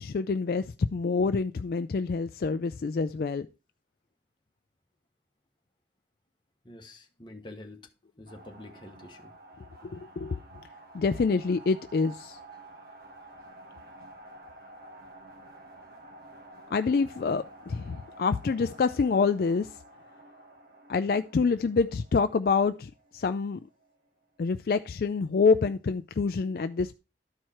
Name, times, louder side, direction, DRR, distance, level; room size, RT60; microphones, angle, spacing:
voice 1, 0.0-3.5 9.8-10.4 10.9-12.4 16.7-19.7 20.9-23.6 24.4-26.9, left 4 dB, 55° left, 0.4 m, -27 dB
voice 2, 6.6-7.9 8.2-9.3, left 1 dB, 25° left, 1.2 m, -47 dB
sound 1, 8.3-24.1, right 2 dB, 60° right, 1.2 m, -51 dB
12.5 x 4.7 x 4.4 m
head